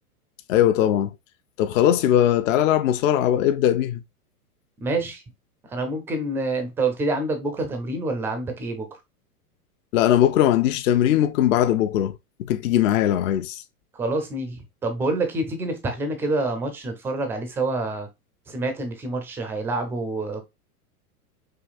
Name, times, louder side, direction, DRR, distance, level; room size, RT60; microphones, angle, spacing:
voice 1, 0.5-1.1 1.6-4.0 9.9-12.2 12.5-13.6, left 11 dB, 60° left, 0.5 m, -20 dB
voice 2, 4.8-5.2 5.7-9.0 13.9-18.1 18.5-20.4, right 2 dB, 5° right, 0.3 m, -27 dB
5.1 x 2.8 x 2.3 m
hypercardioid pair, 115°, 46 cm